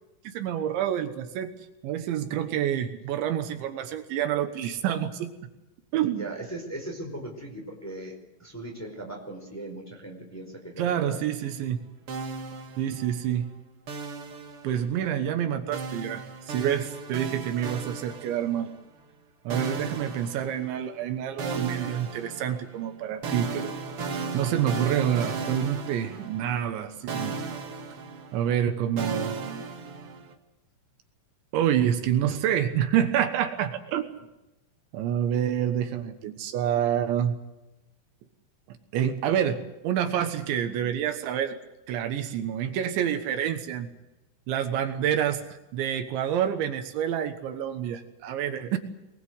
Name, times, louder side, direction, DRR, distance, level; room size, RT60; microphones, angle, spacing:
voice 1, 0.2-1.5 1.8-5.3 5.9-6.3 10.8-11.8 12.8-13.5 14.6-18.7 19.4-23.8 24.3-27.4 28.3-29.6 31.5-34.1 34.9-37.4 38.7-41.6 41.9-43.9 44.5-48.8, right 10 dB, 75° right, 7 dB, 3.5 m, -28 dB
voice 2, 6.0-8.1 8.4-11.2 19.6-20.0, right 1 dB, 5° left, 0 dB, 4.0 m, -39 dB
sound 1, 12.1-13.3 13.9-15.1 15.7-18.8 19.5-21.0 21.4-26.8 27.1-30.3, right 4 dB, 60° right, 1.5 m, -36 dB
23.0 x 21.0 x 8.0 m, 0.97 s
omnidirectional pair, 5.4 m